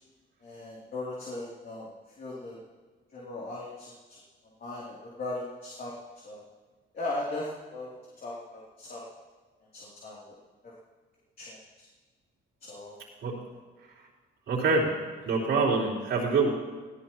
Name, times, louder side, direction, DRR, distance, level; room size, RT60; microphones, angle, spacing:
voice 1, 0.4-1.9 2.2-2.6 3.1-4.2 4.6-5.9 6.2-6.4 6.9-7.9 8.2-9.1 9.7-10.4 10.6-10.7 11.4-11.6 12.6-13.0, left 2 dB, 50° left, -5 dB, 3.2 m, -38 dB
voice 2, 14.5-15.0 15.3-16.5, right 4 dB, 75° right, -7 dB, 4.0 m, -25 dB
20.0 x 17.0 x 3.1 m, 1.4 s
cardioid pair, 90°, 20 cm